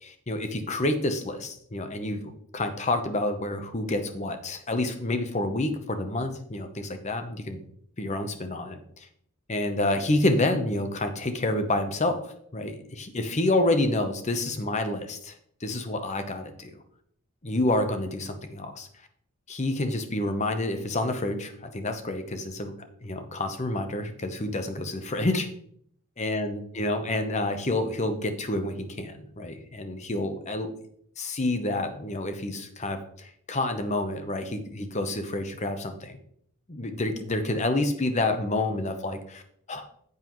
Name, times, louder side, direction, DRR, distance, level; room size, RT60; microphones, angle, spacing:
voice 1, 0.0-7.6 8.0-9.1 9.5-15.3 15.6-16.8 17.4-18.9 19.5-22.7 23.0-25.5 26.2-30.7 31.2-36.2 36.7-39.4 39.7-39.8, left 2 dB, 30° left, 8 dB, 0.9 m, -28 dB
9.1 x 8.2 x 3.1 m, 0.66 s
head